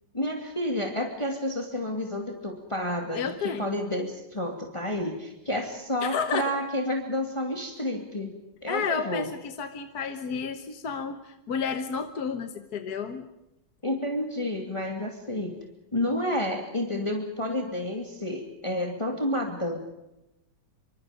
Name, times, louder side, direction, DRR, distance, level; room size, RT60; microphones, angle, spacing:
voice 1, 0.1-8.3 8.6-9.3 13.8-15.6 15.9-19.8, left 1 dB, 15° left, 3 dB, 2.7 m, -30 dB
voice 2, 3.1-3.7 6.0-6.6 8.7-13.3, left 6 dB, 60° left, 8 dB, 1.8 m, -31 dB
26.5 x 25.5 x 5.2 m, 0.91 s
omnidirectional pair, 1.9 m